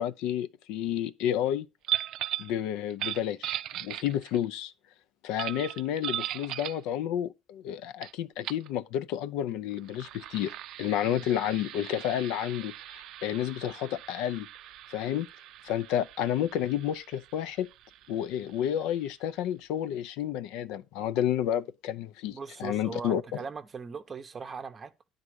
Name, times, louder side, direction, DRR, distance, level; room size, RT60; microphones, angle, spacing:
voice 1, 0.0-1.7 2.4-4.7 5.2-14.5 14.9-15.3 15.6-17.7 18.1-23.4, left 10 dB, 80° left, 0.6 m, -31 dB
sound 1, 1.8-2.5 2.9-4.4 5.4-6.8 8.0-8.1 8.4-8.7 9.7-19.0, right 13 dB, 55° right, 0.4 m, -38 dB
voice 2, 22.3-24.9, right 5 dB, 20° right, 0.7 m, -40 dB
11.0 x 3.9 x 6.4 m
cardioid pair, 175°, 0 cm